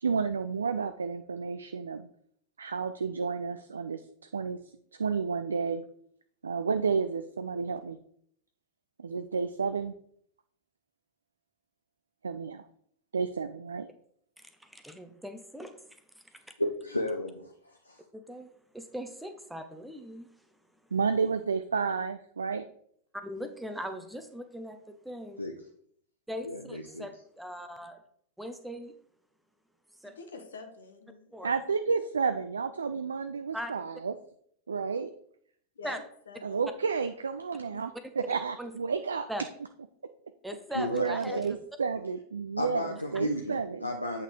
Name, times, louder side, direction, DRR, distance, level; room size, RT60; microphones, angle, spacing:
voice 1, 0.0-2.1 2.6-4.0 4.3-4.6 5.0-5.8 6.4-8.0 9.0-9.9 12.2-12.7 13.1-13.9 20.9-22.7 31.4-34.1 34.7-35.1 36.4-39.3 40.9-43.9, right 5 dB, 75° right, 9 dB, 0.3 m, -31 dB
voice 2, 14.4-16.0 18.1-20.3 23.2-25.4 26.3-28.0 28.4-28.9 30.0-30.1 31.3-31.5 33.5-33.7 35.8-36.0 38.6-38.7 39.3-39.4 40.4-41.4, equal, 5° right, 7 dB, 0.7 m, -40 dB
voice 3, 16.6-17.5 17.9-18.0 25.4-25.5 26.4-27.1 40.7-41.5 42.6-44.2, left 1 dB, 85° left, 2 dB, 0.6 m, -33 dB
voice 4, 30.0-31.4 35.8-36.7 37.7-37.9, left 4 dB, 70° left, 6 dB, 1.0 m, -47 dB
8.2 x 5.6 x 3.2 m, 0.66 s
figure-of-eight pair, 90°, 0 cm